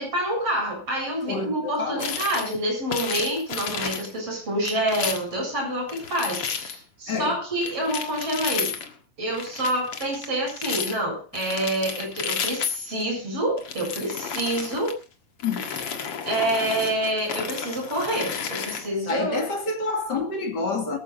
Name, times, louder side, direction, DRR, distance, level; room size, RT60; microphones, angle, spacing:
voice 1, 0.0-8.7 9.2-14.9 16.2-19.4, right 1 dB, 35° right, 8.5 m, -27 dB
voice 2, 1.3-2.1 7.1-7.4 15.4-15.7 19.1-21.0, left 4 dB, 30° left, 2.3 m, -28 dB
sound 1, 2.0-2.6 2.9-4.1 4.7-5.4 5.9-6.8 7.6-8.9 9.3-11.0 11.3-13.0 13.6-14.9 15.4-19.1, left 7 dB, 50° left, 2.0 m, -32 dB
22.5 x 14.0 x 2.6 m
omnidirectional pair, 4.5 m